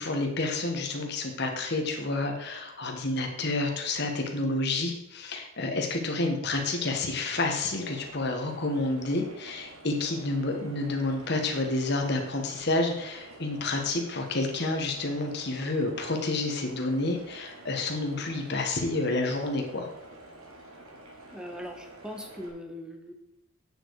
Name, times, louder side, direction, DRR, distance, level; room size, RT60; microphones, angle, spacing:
voice 1, 0.0-19.9, left 2 dB, 50° left, 3 dB, 1.5 m, -29 dB
sound 1, 7.2-22.5, right 1 dB, 85° right, 2.6 m, -49 dB
voice 2, 21.3-23.1, equal, 5° right, 4 dB, 1.0 m, -40 dB
8.9 x 6.9 x 4.8 m, 0.82 s
head